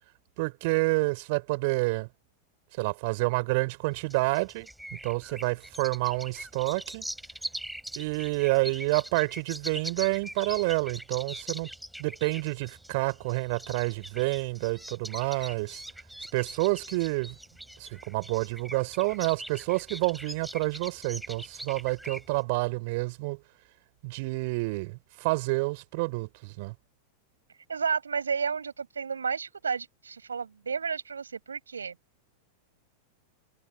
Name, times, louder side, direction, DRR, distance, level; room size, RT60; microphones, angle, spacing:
voice 1, 0.4-2.1 2.8-7.0 8.0-11.7 12.0-15.8 16.3-17.3 17.8-23.4 24.0-26.7, right 26 dB, 50° right, 5.0 m, -29 dB
sound 1, 3.9-22.4, right 1 dB, ahead, 6.3 m, -42 dB
voice 2, 27.7-31.9, right 6 dB, 75° right, 5.3 m, -32 dB
figure-of-eight pair, 90°, 0 cm